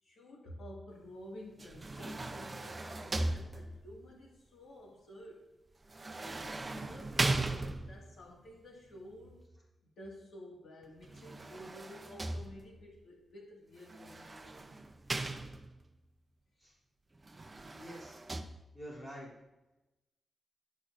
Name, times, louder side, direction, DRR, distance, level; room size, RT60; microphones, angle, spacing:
voice 1, 0.0-5.5 6.2-9.4 10.0-14.8, equal, 70° left, -2 dB, 1.9 m, -52 dB
sound 1, 1.6-4.0 5.9-8.2 11.0-12.9 13.9-15.9 17.2-18.4, right 2 dB, 20° right, 0.5 m, -38 dB
voice 2, 17.7-18.2 18.7-19.3, equal, 15° left, -7 dB, 3.0 m, -47 dB
10.5 x 10.5 x 2.6 m, 1.0 s
wide cardioid pair, 175°, 0 cm